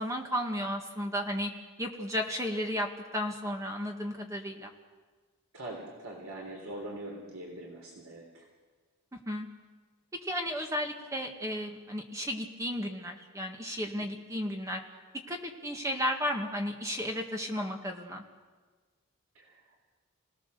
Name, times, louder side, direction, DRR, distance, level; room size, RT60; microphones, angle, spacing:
voice 1, 0.0-1.5 1.8-4.7 9.1-9.5 10.3-14.8 15.3-18.2, equal, 15° right, 2 dB, 1.8 m, -34 dB
voice 2, 5.5-8.5 14.0-14.1 19.4-19.8, right 1 dB, 70° right, 0 dB, 3.5 m, -43 dB
27.0 x 18.0 x 6.9 m, 1.4 s
head